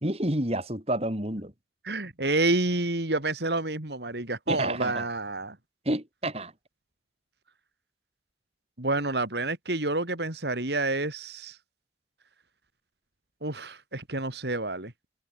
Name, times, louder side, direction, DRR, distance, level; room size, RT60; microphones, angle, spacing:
voice 1, 0.0-1.5 4.5-5.1 5.9-6.5, right 1 dB, 35° right, 4.3 m, -29 dB
voice 2, 1.8-5.6 8.8-11.6 13.4-14.9, right 2 dB, 70° right, 3.5 m, -29 dB
head